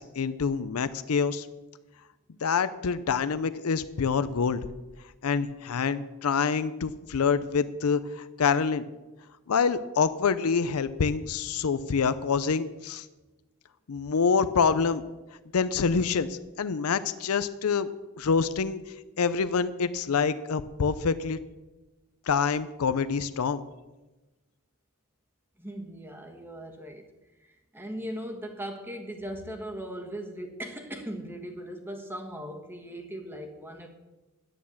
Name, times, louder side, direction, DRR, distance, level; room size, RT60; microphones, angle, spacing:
voice 1, 0.0-1.5 2.4-4.6 5.2-8.9 9.5-13.1 13.9-15.0 15.5-17.9 18.2-18.8 19.2-21.4 22.3-23.6, left 5 dB, 85° left, 13 dB, 0.5 m, -26 dB
voice 2, 25.6-27.1 27.7-33.9, right 1 dB, 10° right, 3 dB, 1.4 m, -38 dB
11.0 x 9.4 x 7.1 m, 1.1 s
head